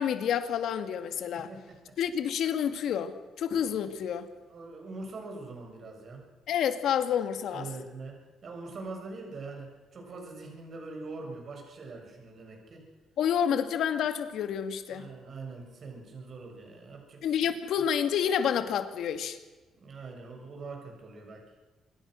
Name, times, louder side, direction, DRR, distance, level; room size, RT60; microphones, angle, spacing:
voice 1, 0.0-1.5 2.0-4.3 6.5-7.7 13.2-15.1 17.2-19.4, left 8 dB, 70° left, 2.0 m, -29 dB
voice 2, 1.3-2.0 4.5-6.3 7.5-12.9 14.9-17.4 19.7-21.4, right 3 dB, 40° right, 7.0 m, -43 dB
26.0 x 22.5 x 6.4 m
cardioid pair, 140°, 0 cm